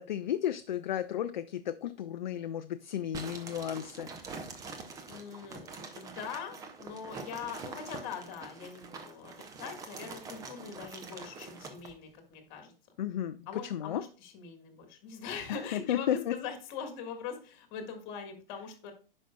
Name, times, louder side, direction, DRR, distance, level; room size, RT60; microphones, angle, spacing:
voice 1, 0.0-4.4 13.0-14.0 15.5-16.3, left 11 dB, 55° left, 10 dB, 0.4 m, -33 dB
sound 1, 3.1-11.9, right 4 dB, 10° right, 0.6 m, -45 dB
voice 2, 5.1-12.7 13.5-18.9, left 6 dB, 30° left, 4 dB, 1.6 m, -42 dB
9.9 x 5.4 x 2.2 m, 0.38 s
figure-of-eight pair, 115°, 29 cm